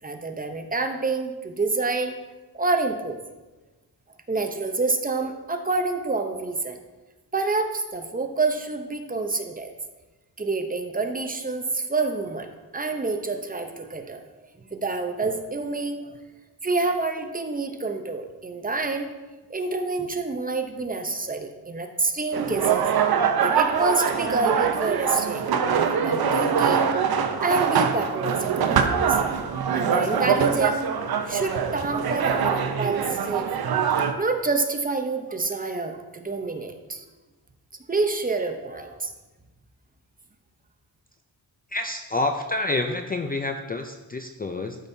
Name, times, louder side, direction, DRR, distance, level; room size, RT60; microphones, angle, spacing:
voice 1, 0.0-2.2 2.5-3.2 4.3-6.8 7.3-9.7 10.4-14.2 14.7-16.1 16.6-19.1 19.5-26.9 27.4-29.2 29.7-30.9 31.3-33.5 34.2-37.1 37.9-39.1, right 3 dB, 20° right, 5 dB, 0.7 m, -27 dB
sound 1, 22.3-34.1, right 7 dB, 65° right, 0.7 m, -23 dB
voice 2, 41.7-44.8, left 2 dB, 25° left, 5 dB, 0.4 m, -28 dB
12.5 x 5.3 x 2.7 m, 1.2 s
cardioid pair, 100°, 39 cm